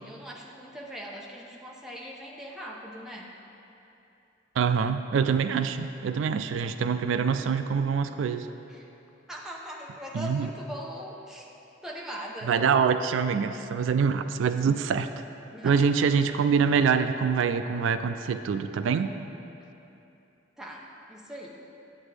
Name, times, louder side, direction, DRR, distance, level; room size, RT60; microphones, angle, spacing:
voice 1, 0.0-3.3 8.7-8.9 9.3-11.5 11.8-12.5 15.5-15.8 20.6-21.6, equal, 5° right, -3 dB, 0.7 m, -40 dB
voice 2, 4.6-8.5 10.1-10.5 12.4-15.1 15.6-19.1, right 6 dB, 90° right, 10 dB, 0.3 m, -25 dB
9.5 x 8.1 x 3.3 m, 2.9 s
head